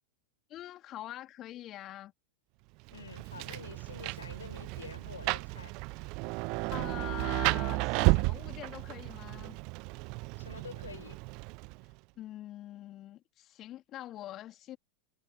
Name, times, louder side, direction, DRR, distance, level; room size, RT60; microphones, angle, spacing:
voice 1, 0.5-2.1 6.7-9.6 12.2-14.8, left 13 dB, 35° left, 2.9 m, -44 dB
voice 2, 2.9-5.7 10.4-11.2, left 6 dB, 70° left, 6.1 m, -48 dB
Rain, 2.9-11.9, right 29 dB, 45° right, 0.6 m, -33 dB
figure-of-eight pair, 90°, 0 cm